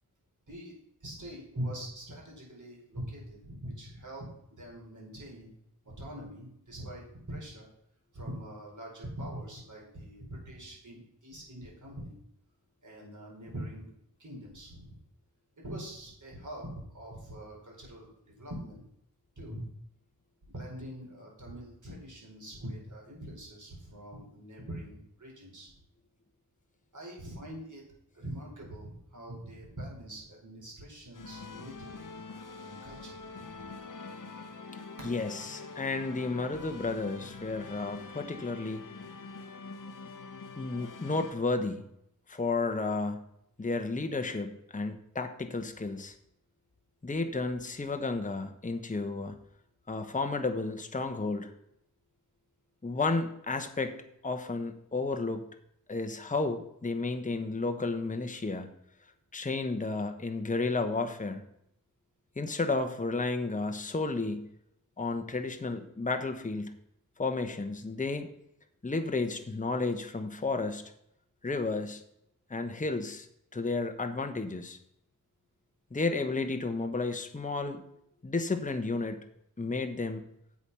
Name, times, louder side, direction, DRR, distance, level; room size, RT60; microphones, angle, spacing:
voice 1, 0.5-5.5 5.8-7.7 8.1-12.1 12.8-13.9 14.2-14.9 15.6-16.7 16.9-18.8 19.4-19.6 20.5-25.7 26.9-27.8 28.1-32.1 32.6-33.7, right 1 dB, 55° right, -2 dB, 4.7 m, -43 dB
sound 1, 31.1-41.3, left 4 dB, 55° left, 1.0 m, -45 dB
voice 2, 35.0-38.8 40.6-41.8 42.3-43.2 43.6-46.1 47.0-49.3 49.9-51.5 52.8-53.9 54.2-55.4 55.9-58.7 59.3-61.4 62.4-64.5 65.0-66.8 67.2-68.3 68.8-70.8 71.4-72.0 72.5-73.3 73.5-74.8 75.9-77.8 78.2-79.2 79.6-80.2, left 3 dB, 20° left, 7 dB, 1.0 m, -32 dB
8.2 x 7.3 x 5.5 m, 0.75 s
cardioid pair, 60°, 37 cm